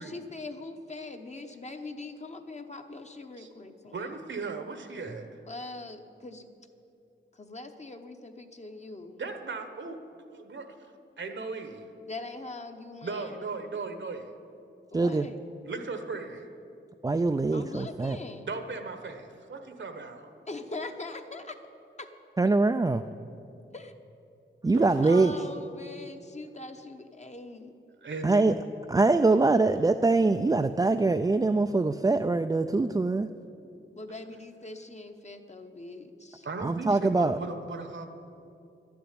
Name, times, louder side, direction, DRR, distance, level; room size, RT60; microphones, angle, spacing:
voice 1, 0.0-4.2 5.5-6.5 7.3-9.2 12.1-13.5 14.9-15.4 17.5-18.5 20.5-21.6 22.0-22.1 23.7-23.9 25.0-27.7 33.9-36.5, left 2 dB, 35° left, 6 dB, 0.9 m, -42 dB
voice 2, 3.9-5.3 9.2-11.9 13.0-14.3 15.6-16.5 18.5-20.3 24.7-25.3 28.0-28.6 36.4-38.1, right 4 dB, 70° right, 7 dB, 1.1 m, -37 dB
voice 3, 14.9-15.3 17.0-18.2 22.4-23.0 24.6-25.3 28.2-28.5 28.9-33.3 36.6-37.4, right 3 dB, 20° right, 7 dB, 0.3 m, -23 dB
11.5 x 7.0 x 9.6 m, 2.6 s
wide cardioid pair, 75°, 20 cm